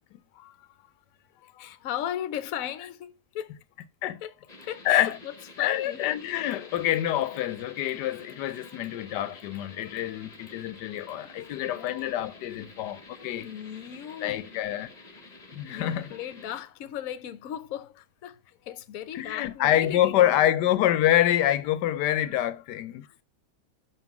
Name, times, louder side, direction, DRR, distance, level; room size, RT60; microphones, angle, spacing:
voice 1, 1.6-3.5 4.2-4.3 4.7-6.0 11.4-12.2 13.4-14.8 15.7-20.5, left 10 dB, 65° left, 1.1 m, -37 dB
sound 1, 4.5-16.6, left 2 dB, 25° left, 1.3 m, -49 dB
voice 2, 4.8-5.2 5.6-13.5 14.2-14.9 15.5-16.1 19.1-23.1, left 12 dB, 90° left, 1.3 m, -26 dB
6.3 x 5.5 x 5.9 m
omnidirectional pair, 1.7 m